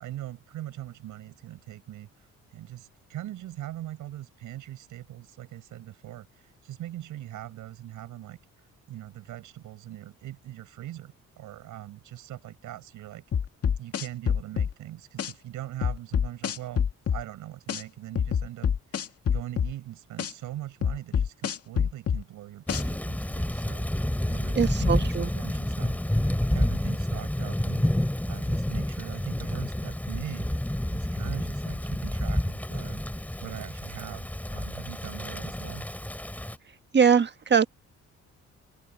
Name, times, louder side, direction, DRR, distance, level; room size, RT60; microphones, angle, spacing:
voice 1, 0.0-8.4 8.9-13.2 13.8-26.0 26.5-33.0 33.4-35.9, right 13 dB, 85° right, 6.5 m, -41 dB
sound 1, 13.3-14.7 15.2-15.3 15.8-17.2 17.7-17.8 18.2-19.7 20.2-20.3 20.8-22.2 22.7-22.8, left 7 dB, 50° left, 2.1 m, -26 dB
Thunder / Rain, 22.7-36.6, left 1 dB, 5° left, 4.3 m, -29 dB
voice 2, 24.5-25.3 36.9-37.7, right 6 dB, 35° right, 1.4 m, -22 dB
open air
cardioid pair, 90°, 30 cm